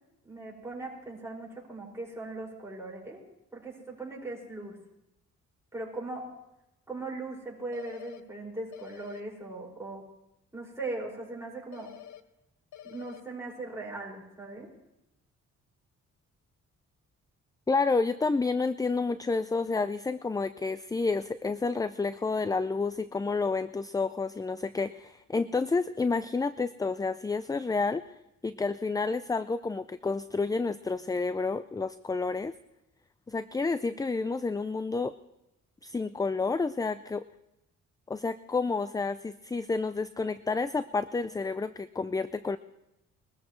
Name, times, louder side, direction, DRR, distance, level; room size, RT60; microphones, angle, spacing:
voice 1, 0.2-3.2 3.5-4.8 5.7-6.3 6.9-10.0 10.5-11.9 12.8-14.7, right 2 dB, 10° right, -3 dB, 5.7 m, -39 dB
sound 1, 7.7-8.2 8.7-9.2 11.7-12.2 12.7-13.2, left 11 dB, 70° left, 0.8 m, -47 dB
voice 2, 17.7-28.0 28.4-32.5 33.3-35.2 35.8-37.2 38.1-42.6, left 4 dB, 10° left, 13 dB, 0.4 m, -30 dB
23.0 x 13.5 x 3.2 m, 0.91 s
cardioid pair, 85°, 30 cm